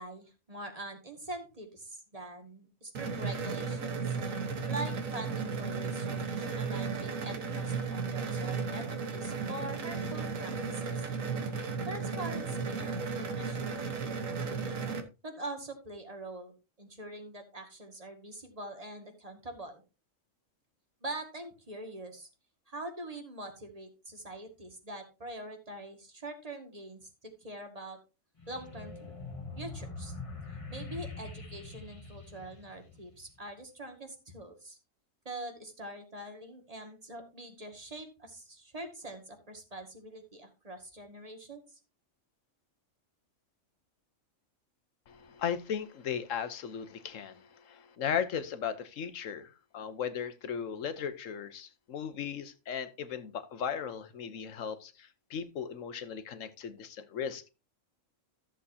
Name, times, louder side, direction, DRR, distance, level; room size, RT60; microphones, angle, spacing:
voice 1, 0.0-4.0 4.7-10.9 11.9-14.7 15.2-19.8 21.0-22.3 22.7-28.0 28.5-29.1 29.6-30.2 30.7-34.8 35.3-41.8, right 1 dB, 30° right, 4 dB, 2.1 m, -44 dB
sound 1, 2.9-15.0, right 5 dB, 80° right, 1.7 m, -35 dB
sound 2, 28.4-33.4, left 3 dB, 25° left, 1.4 m, -43 dB
voice 2, 45.1-57.5, left 7 dB, 75° left, 12 dB, 1.3 m, -37 dB
13.5 x 7.5 x 2.7 m, 0.30 s
omnidirectional pair, 1.3 m